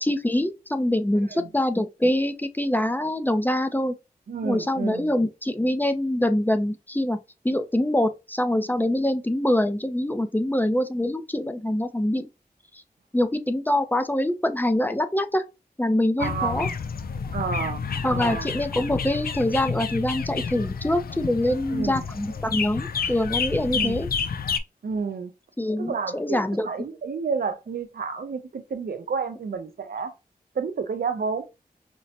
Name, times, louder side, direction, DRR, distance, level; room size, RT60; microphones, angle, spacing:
voice 1, 0.0-3.9 4.4-7.2 7.4-12.3 13.1-15.4 15.8-16.7 18.0-24.1 25.6-26.7, left 1 dB, 10° left, 0.5 m, -24 dB
voice 2, 4.3-5.1 16.2-16.8 17.3-17.8 18.1-18.5 21.7-22.0 23.6-24.0 24.8-25.3 25.8-30.1 30.5-31.4, right 5 dB, 75° right, 0.6 m, -30 dB
sound 1, 16.2-24.6, left 6 dB, 70° left, 0.4 m, -30 dB
5.1 x 2.1 x 2.8 m
cardioid pair, 55°, 16 cm